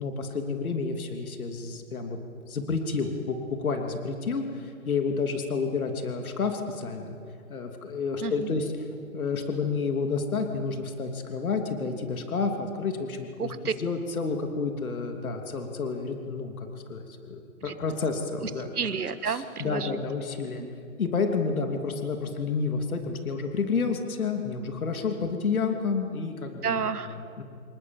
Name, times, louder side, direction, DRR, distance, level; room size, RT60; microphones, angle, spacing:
voice 1, 0.0-2.2 2.5-7.2 7.5-8.7 9.1-13.5 13.8-18.7 19.3-20.6 21.0-26.8 27.4-27.5, left 4 dB, 70° left, 4 dB, 3.0 m, -30 dB
voice 2, 8.2-8.6 13.4-13.7 17.7-17.8 18.4-20.0 20.6-20.7 26.6-27.2, right 6 dB, 90° right, 11 dB, 1.7 m, -31 dB
27.0 x 20.0 x 7.3 m, 2.4 s
hypercardioid pair, 170°, 44 cm